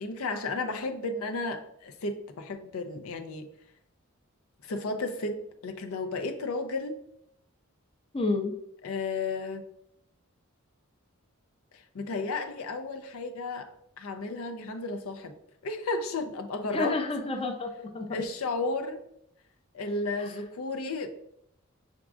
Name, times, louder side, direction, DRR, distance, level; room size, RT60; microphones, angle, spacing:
voice 1, 0.0-3.5 4.6-5.4 5.6-7.0 8.8-9.6 11.7-13.7 14.0-15.3 15.6-17.0 18.1-19.0 19.7-21.1, left 3 dB, 80° left, 7 dB, 0.5 m, -33 dB
voice 2, 8.1-8.5 16.7-18.2 20.2-20.3, left 2 dB, 25° left, 5 dB, 0.5 m, -30 dB
6.0 x 3.6 x 2.4 m, 0.75 s
head